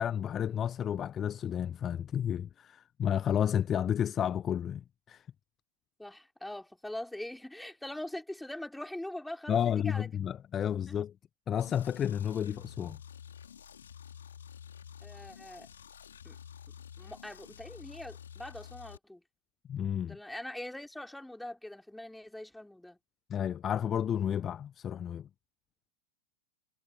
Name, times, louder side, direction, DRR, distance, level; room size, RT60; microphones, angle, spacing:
voice 1, 0.0-5.2 9.5-11.1 11.5-13.0 19.7-20.2 23.3-25.3, left 9 dB, 25° left, 0.5 m, -31 dB
voice 2, 6.0-10.1 15.0-15.7 16.2-16.4 17.0-19.2 20.0-23.0, left 1 dB, 5° left, 3.8 m, -42 dB
sound 1, 11.6-19.0, left 8 dB, 65° left, 3.4 m, -50 dB
figure-of-eight pair, 90°, 0 cm